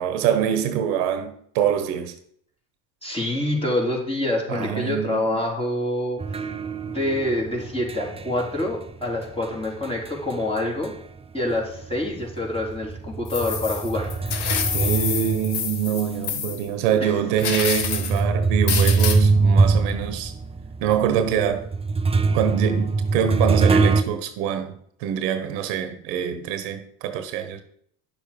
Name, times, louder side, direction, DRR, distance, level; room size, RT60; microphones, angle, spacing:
voice 1, 0.0-2.1 4.5-5.4 14.7-20.3 20.8-21.7 22.3-27.6, right 9 dB, 75° right, 1.3 m, -25 dB
voice 2, 3.0-6.5 6.9-10.9 11.3-14.3 17.0-17.2, left 1 dB, 10° left, 3.9 m, -26 dB
sound 1, 6.2-11.2 11.5-16.2 16.8-16.9 17.6-24.0, right 4 dB, 15° right, 0.6 m, -23 dB
sound 2, 13.3-16.6 17.4-18.2 18.7-19.2, left 7 dB, 55° left, 1.6 m, -27 dB
10.0 x 6.9 x 5.3 m
hypercardioid pair, 75°, 48 cm